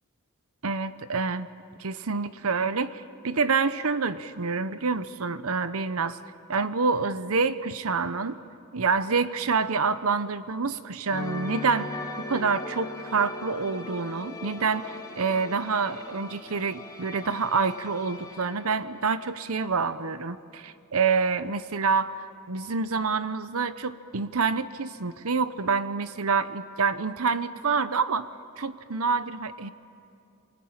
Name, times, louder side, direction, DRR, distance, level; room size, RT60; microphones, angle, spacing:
voice 1, 0.6-1.5 1.8-6.2 6.5-8.4 8.7-11.9 12.3-28.3 28.6-29.7, right 5 dB, 70° right, 13 dB, 0.8 m, -27 dB
sound 1, 11.1-19.8 20.0-20.3, left 2 dB, 15° left, 2.0 m, -40 dB
28.0 x 23.5 x 8.8 m, 2.5 s
head